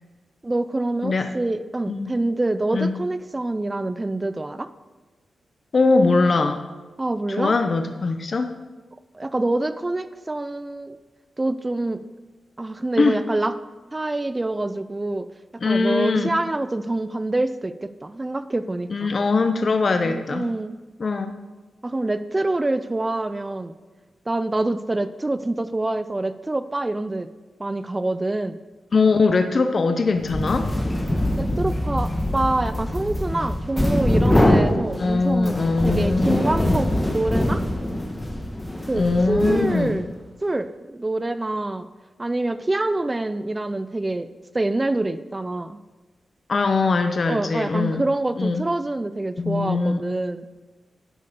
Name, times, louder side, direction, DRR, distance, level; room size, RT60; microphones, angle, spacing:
voice 1, 0.4-4.7 7.0-7.6 9.1-11.0 11.4-12.0 12.6-13.5 13.9-15.3 15.5-19.1 20.0-20.8 21.8-23.7 24.3-27.3 27.6-28.6 31.4-37.6 38.9-40.1 40.4-41.9 42.2-44.3 44.5-45.8 47.3-50.4, right 2 dB, 20° right, 12 dB, 0.4 m, -26 dB
voice 2, 5.7-6.6 7.3-8.5 13.0-13.2 15.6-16.3 18.9-20.4 21.0-21.3 28.9-30.7 35.0-36.9 38.9-40.0 46.5-48.0 48.4-48.6 49.4-50.0, left 3 dB, 50° left, 7 dB, 0.7 m, -21 dB
sound 1, 30.2-40.1, left 1 dB, 15° left, 1.3 m, -23 dB
11.0 x 6.4 x 6.7 m, 1.3 s
cardioid pair, 90°, 0 cm